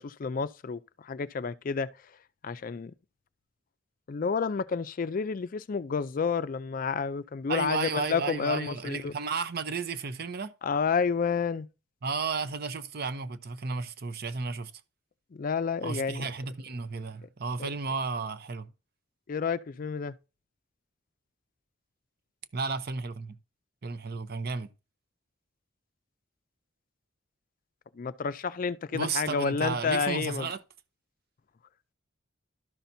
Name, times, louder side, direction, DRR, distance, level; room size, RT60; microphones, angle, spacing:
voice 1, 0.0-1.9 2.4-2.9 4.1-9.1 10.6-11.7 15.3-16.3 17.2-17.3 17.6-17.7 19.3-20.1 27.9-30.5, left 5 dB, 45° left, 0.4 m, -30 dB
voice 2, 7.5-10.5 12.0-14.7 15.8-18.7 22.5-23.4 23.8-24.7 28.9-30.6, right 4 dB, 55° right, 0.7 m, -33 dB
12.0 x 5.8 x 2.7 m
head